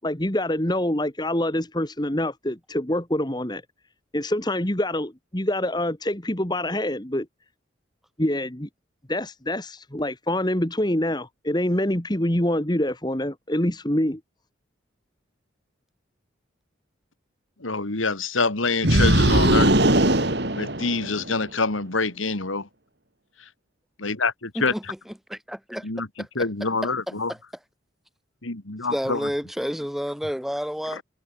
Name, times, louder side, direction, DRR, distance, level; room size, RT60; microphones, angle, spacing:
voice 1, 0.0-3.6 4.1-7.3 8.2-8.7 9.1-14.2, left 1 dB, 20° left, 1.9 m, -25 dB
voice 2, 17.6-19.7 20.5-22.7 24.0-24.9 25.8-26.1 26.3-27.3 28.4-29.3 30.9-31.0, left 3 dB, 85° left, 2.5 m, -26 dB
sound 1, 18.8-21.3, right 1 dB, 55° right, 3.0 m, -19 dB
voice 3, 25.3-25.9 27.1-27.2 28.9-31.0, equal, ahead, 4.2 m, -29 dB
head